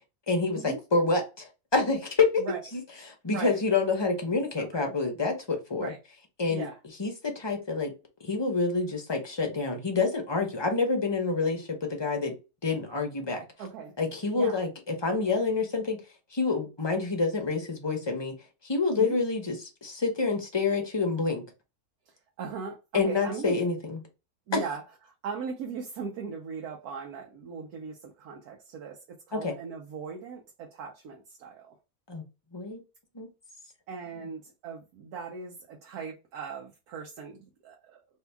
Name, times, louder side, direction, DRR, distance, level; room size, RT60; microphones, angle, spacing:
voice 1, 0.3-2.5 2.7-2.8 3.2-5.9 6.4-6.7 7.0-7.9 8.2-12.4 12.6-13.4 14.0-16.0 16.3-18.3 18.6-21.4 22.9-24.0 24.5-24.6 29.3-29.5 32.1-32.2 32.5-32.8 33.1-33.3, left 4 dB, 30° left, 0.5 m, -27 dB
voice 2, 3.3-3.6 4.6-4.9 5.7-6.0 6.5-6.8 13.6-14.0 14.3-14.6 19.0-19.2 22.1-23.6 24.5-24.8 25.2-29.0 29.3-31.8 33.9-38.0, right 5 dB, 90° right, 1.2 m, -39 dB
2.7 x 2.7 x 3.3 m
omnidirectional pair, 1.5 m